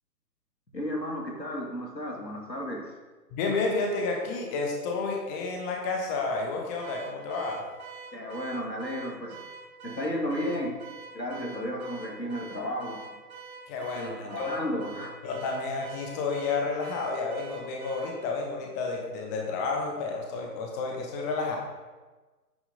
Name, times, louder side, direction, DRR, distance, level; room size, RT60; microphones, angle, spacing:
voice 1, 0.7-2.9 8.1-9.4 9.8-10.8 11.1-13.0 13.9-15.1, equal, 90° left, -1 dB, 2.6 m, -33 dB
voice 2, 3.3-7.6 13.7-14.5 15.2-21.6, left 3 dB, 10° left, 1 dB, 0.8 m, -31 dB
Car / Alarm, 6.8-18.2, right 5 dB, 60° right, 1.8 m, -46 dB
8.9 x 8.6 x 4.0 m, 1.3 s
figure-of-eight pair, 130°, 49 cm